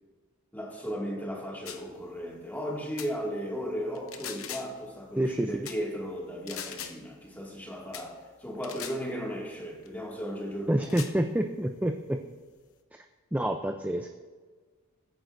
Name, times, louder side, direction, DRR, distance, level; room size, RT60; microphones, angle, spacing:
voice 1, 0.5-10.9, equal, 10° left, -2 dB, 2.1 m, -36 dB
sound 1, 1.6-1.9 3.0-3.1 3.9-4.8 5.6-5.8 6.5-7.0 7.9-8.1 8.6-9.0 9.8-9.9 10.8-11.2, left 9 dB, 65° left, 0.8 m, -40 dB
voice 2, 5.2-5.5 10.7-12.2 12.9-13.1 13.3-14.1, right 1 dB, 5° right, 5 dB, 0.4 m, -28 dB
21.0 x 9.4 x 2.6 m, 1.4 s
head